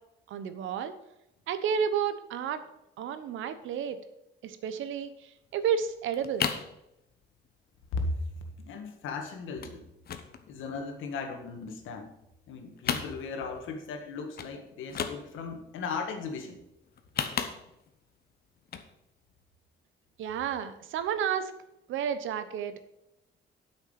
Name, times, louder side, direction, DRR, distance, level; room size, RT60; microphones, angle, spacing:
voice 1, 0.3-0.9 1.5-2.6 3.0-4.0 4.4-6.5 20.2-21.5 21.9-22.8, right 8 dB, 80° right, 11 dB, 0.9 m, -31 dB
sound 1, 5.5-5.6 5.9-6.7 7.1-7.5 7.8-7.9 8.1-8.3 8.6-9.1 9.6-9.8 10.0-11.3 11.7-12.5 12.7-13.6 13.9-14.0 14.3-14.5 14.8-15.6 16.9-18.0 18.6-18.9 19.3-19.4, left 7 dB, 50° left, 1.0 m, -34 dB
voice 2, 8.6-9.8 10.5-12.1 12.5-16.6, left 4 dB, 85° left, 5 dB, 1.7 m, -37 dB
8.7 x 6.3 x 6.6 m, 0.88 s
cardioid pair, 100°, 20 cm